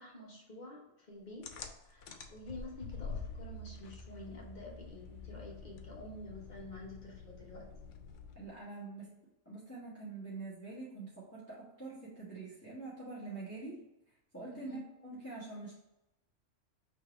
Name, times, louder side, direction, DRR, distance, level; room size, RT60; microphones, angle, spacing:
voice 1, 0.0-7.9 14.5-14.8, left 1 dB, 40° left, -2 dB, 1.1 m, -49 dB
sound 1, 1.4-8.6, left 4 dB, 80° left, 0.9 m, -47 dB
voice 2, 8.3-9.2 9.4-13.8 14.3-15.8, right 3 dB, 15° left, -8 dB, 1.1 m, -45 dB
3.3 x 3.3 x 4.8 m, 0.92 s
omnidirectional pair, 1.3 m